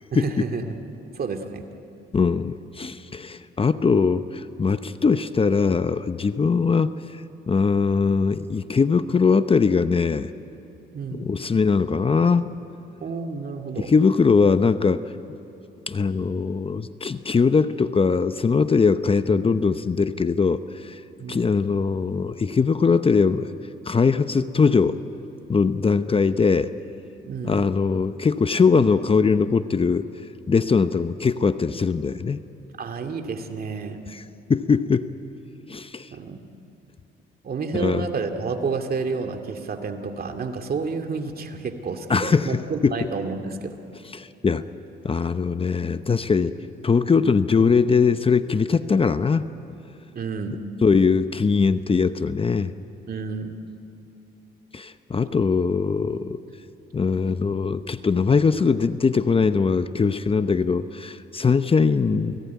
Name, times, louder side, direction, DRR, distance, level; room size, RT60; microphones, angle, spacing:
voice 1, 0.1-0.8 1.1-1.6 10.9-11.3 13.0-13.9 21.2-21.4 27.2-27.7 32.8-34.0 36.1-36.5 37.4-43.8 50.2-50.6 53.1-53.5 62.1-62.3, right 4 dB, 50° right, 5 dB, 2.3 m, -30 dB
voice 2, 2.1-10.3 11.1-12.5 13.9-15.0 15.9-21.0 21.3-23.5 23.8-25.0 25.5-26.7 27.4-30.1 30.5-32.4 34.1-34.2 34.5-35.1 35.7-36.1 37.7-38.1 42.1-43.1 44.1-44.7 45.0-46.6 46.8-49.5 50.8-52.7 54.7-56.4 56.9-62.4, left 5 dB, 30° left, 12 dB, 0.8 m, -21 dB
28.5 x 18.5 x 9.4 m, 2.9 s
cardioid pair, 90°, 20 cm